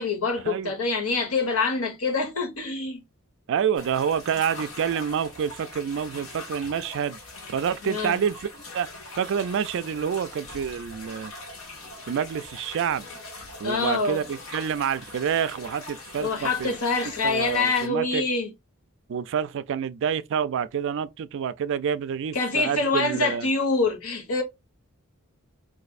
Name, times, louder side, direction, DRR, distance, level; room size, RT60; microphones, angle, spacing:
voice 1, 0.0-3.0 7.8-8.2 13.6-14.2 16.2-18.5 22.3-24.4, left 3 dB, 85° left, 1.2 m, -25 dB
voice 2, 3.5-7.2 7.5-8.4 8.7-8.9 9.2-11.3 12.1-13.1 13.6-16.7 17.2-18.2 19.1-23.5, right 7 dB, 60° right, 0.3 m, -28 dB
sound 1, 3.8-17.9, left 2 dB, 65° left, 1.4 m, -42 dB
4.0 x 2.6 x 2.4 m
head